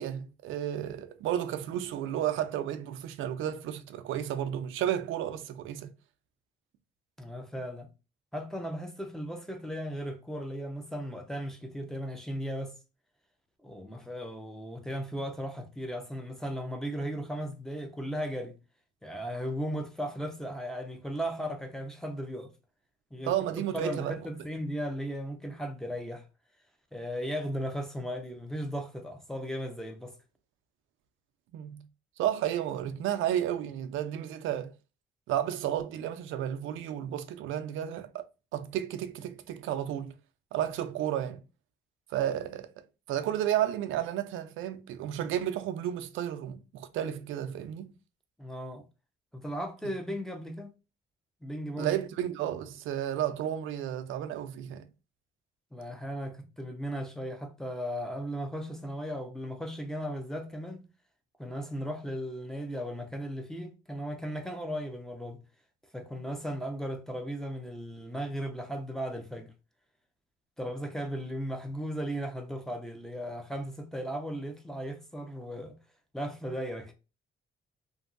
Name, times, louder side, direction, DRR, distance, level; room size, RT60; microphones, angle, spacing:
voice 1, 0.0-5.9 23.2-24.2 31.5-31.9 32.2-34.7 35.3-38.3 38.5-40.1 40.5-41.4 42.1-47.9 51.8-54.9, right 11 dB, 85° right, 0.4 m, -32 dB
voice 2, 7.2-7.9 8.3-12.7 13.6-18.6 19.0-22.5 23.1-23.3 23.7-26.2 26.9-30.2 48.4-48.8 49.3-50.7 51.4-51.9 55.7-60.8 61.4-65.4 65.9-69.5 70.6-75.8 76.1-76.9, equal, ahead, 0.6 m, -36 dB
2.9 x 2.6 x 2.4 m
cardioid pair, 90°, 20 cm